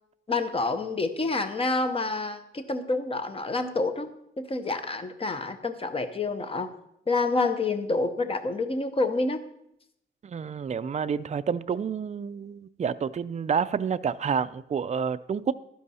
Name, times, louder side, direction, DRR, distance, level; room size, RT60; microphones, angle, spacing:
voice 1, 0.3-4.1 4.4-6.7 7.1-9.4, left 3 dB, 25° left, 0.8 m, -28 dB
voice 2, 10.2-15.5, right 6 dB, 35° right, 0.4 m, -29 dB
12.0 x 10.0 x 4.2 m
wide cardioid pair, 170°, 21 cm